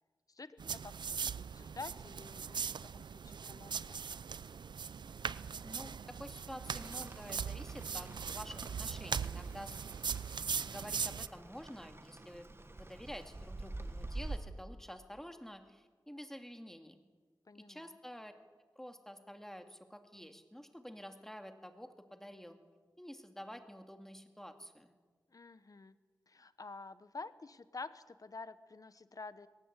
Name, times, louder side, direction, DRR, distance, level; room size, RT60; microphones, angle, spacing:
voice 1, 0.3-4.0 17.4-18.0 25.3-26.0 26.3-29.5, left 3 dB, 50° left, 13 dB, 1.2 m, -49 dB
sound 1, 0.6-11.3, right 6 dB, 80° right, 0.5 m, -40 dB
voice 2, 5.6-9.8 10.7-12.5 12.7-17.0 17.5-18.3 18.8-22.6 23.0-24.9, equal, 5° left, 6 dB, 2.4 m, -49 dB
Rain, 6.7-14.4, right 2 dB, 35° right, 1.7 m, -48 dB
21.0 x 18.0 x 8.3 m, 1.4 s
cardioid pair, 55°, 8 cm